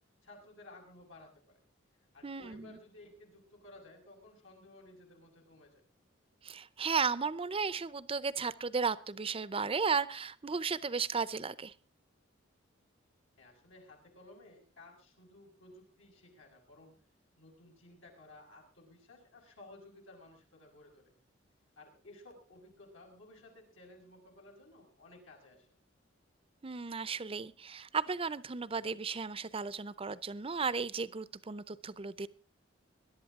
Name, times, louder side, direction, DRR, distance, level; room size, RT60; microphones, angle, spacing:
voice 1, 0.2-1.6 2.1-5.9 13.4-16.9 17.4-21.1 21.8-25.8, left 2 dB, 85° left, 0 dB, 6.2 m, -56 dB
voice 2, 2.2-2.7 6.4-11.7 26.6-32.3, right 5 dB, 30° right, 17 dB, 0.6 m, -34 dB
22.0 x 11.5 x 3.7 m, 0.37 s
head